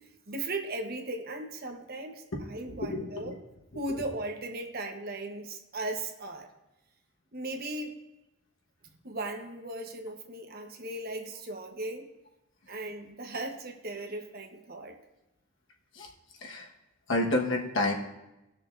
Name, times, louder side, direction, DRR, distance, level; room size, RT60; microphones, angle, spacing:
voice 1, 0.3-3.3 3.7-6.5 7.3-7.9 9.0-12.1 12.7-15.0, right 2 dB, 50° right, 4 dB, 1.1 m, -37 dB
voice 2, 2.3-3.3 3.7-4.0 15.9-16.1 16.4-16.7 17.1-17.9, left 2 dB, 65° left, 0 dB, 1.4 m, -30 dB
19.0 x 6.7 x 2.6 m, 0.96 s
head